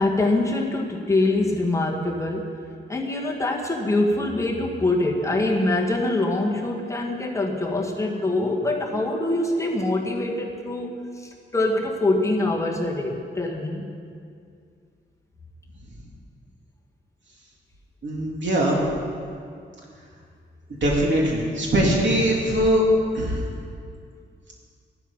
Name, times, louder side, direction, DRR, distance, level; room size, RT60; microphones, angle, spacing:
voice 1, 0.0-2.5 2.9-13.9, left 2 dB, 15° left, -2 dB, 1.8 m, -24 dB
voice 2, 18.0-18.8 20.8-22.8 23.1-23.4, right 1 dB, 65° right, -3 dB, 2.8 m, -21 dB
14.5 x 12.0 x 5.5 m, 2.3 s
wide cardioid pair, 150°, 20 cm